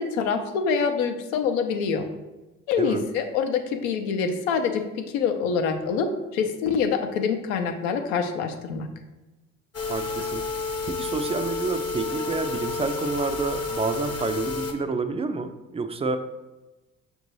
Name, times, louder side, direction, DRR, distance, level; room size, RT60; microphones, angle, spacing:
voice 1, 0.0-2.0 2.7-4.8 5.1-8.9, left 6 dB, 80° left, 5 dB, 0.7 m, -25 dB
sound 1, 9.7-14.7, left 4 dB, 40° left, 0.9 m, -30 dB
voice 2, 9.9-10.4 10.9-16.2, right 4 dB, 15° right, 8 dB, 0.3 m, -29 dB
6.5 x 2.7 x 3.0 m, 1.1 s
hypercardioid pair, 60°, 40 cm